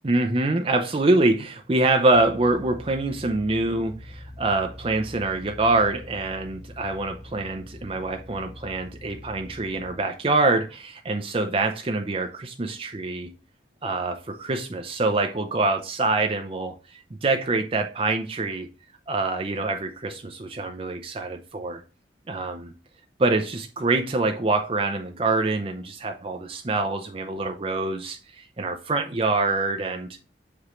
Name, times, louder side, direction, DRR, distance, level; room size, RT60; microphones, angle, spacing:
voice 1, 0.0-13.3 13.8-16.7 17.2-18.7 19.1-21.8 22.3-22.7 23.2-30.2, right 2 dB, 30° right, 0.5 m, -25 dB
sound 1, 2.1-10.0, left 1 dB, 20° left, 1.1 m, -43 dB
7.0 x 4.9 x 3.1 m
head